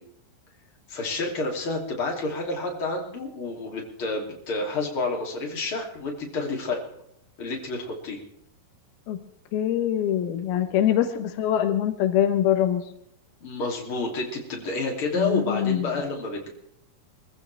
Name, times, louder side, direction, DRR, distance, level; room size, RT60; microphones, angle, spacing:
voice 1, 0.9-6.8 7.4-8.2 13.4-16.5, left 3 dB, 35° left, 0 dB, 3.6 m, -29 dB
voice 2, 9.5-12.8 15.2-15.9, left 10 dB, 90° left, 8 dB, 3.1 m, -23 dB
24.5 x 14.5 x 3.5 m, 0.74 s
omnidirectional pair, 4.3 m